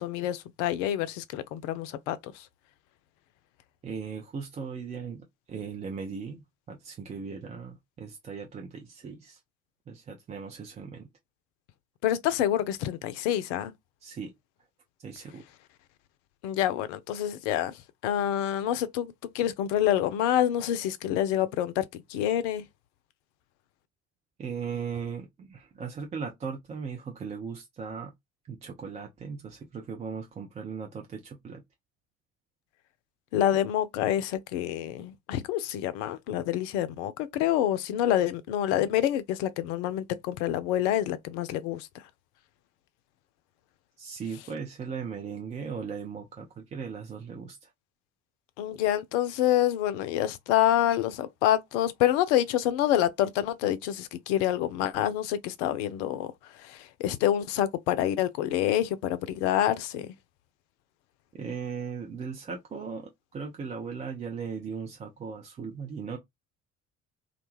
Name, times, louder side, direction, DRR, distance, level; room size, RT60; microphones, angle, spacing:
voice 1, 0.0-2.5 12.0-13.7 16.4-22.6 33.3-41.9 48.6-56.3 56.5-60.1, left 12 dB, 60° left, 0.5 m, -27 dB
voice 2, 3.8-9.4 9.9-11.1 14.0-14.3 15.0-15.5 24.4-28.1 28.5-31.6 44.0-47.7 61.4-66.2, right 6 dB, 20° right, 0.3 m, -38 dB
2.4 x 2.2 x 3.0 m
figure-of-eight pair, 55°, 41 cm